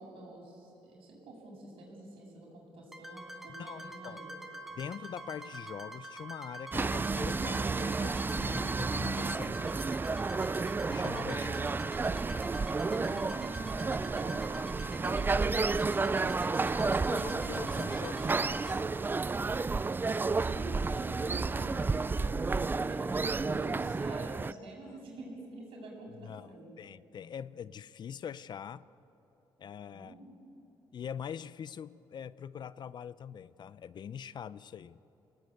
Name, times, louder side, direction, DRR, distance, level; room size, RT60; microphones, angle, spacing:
voice 1, 0.0-4.3 11.3-11.6 12.7-15.8 16.1-16.4 20.1-26.7 29.9-30.3, right 2 dB, 75° right, 0 dB, 7.3 m, -47 dB
sound 1, 2.9-18.8, right 2 dB, 5° right, 2.3 m, -46 dB
voice 2, 3.5-4.2 4.7-9.6 10.9-12.0 16.6-18.8 26.2-26.5 26.8-28.8 29.6-30.1 30.9-35.0, left 8 dB, 50° left, 17 dB, 0.6 m, -43 dB
sound 2, 6.7-24.5, right 4 dB, 20° right, 0.5 m, -31 dB
28.5 x 18.5 x 8.6 m, 2.9 s
cardioid pair, 90°, 9 cm